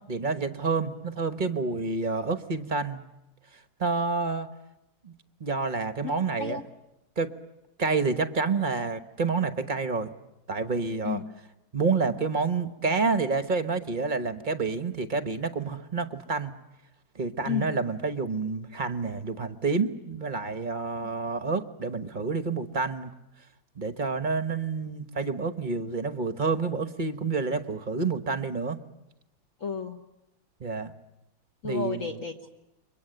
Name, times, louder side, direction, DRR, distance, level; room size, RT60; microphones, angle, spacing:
voice 1, 0.1-3.0 3.8-4.5 5.0-5.1 5.4-6.6 7.2-7.3 7.8-10.1 10.5-11.2 11.7-16.5 17.1-23.1 23.8-28.8 30.6-30.9 31.6-32.1, right 4 dB, 30° right, 9 dB, 0.9 m, -28 dB
voice 2, 6.0-6.6 11.0-11.2 17.4-17.7 21.0-21.1 29.6-30.0 31.6-32.5, left 6 dB, 45° left, 2 dB, 1.5 m, -32 dB
30.0 x 23.5 x 7.9 m, 0.92 s
omnidirectional pair, 2.2 m